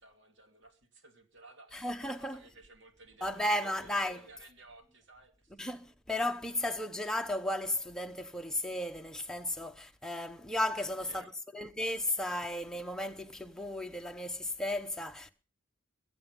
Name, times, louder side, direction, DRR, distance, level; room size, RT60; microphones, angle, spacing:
voice 1, 0.0-5.5 10.8-11.3, right 2 dB, 65° right, 2.9 m, -56 dB
voice 2, 1.7-2.4 3.2-4.2 5.6-11.2 11.5-15.3, left 1 dB, 5° left, 0.9 m, -34 dB
22.5 x 8.4 x 5.3 m
head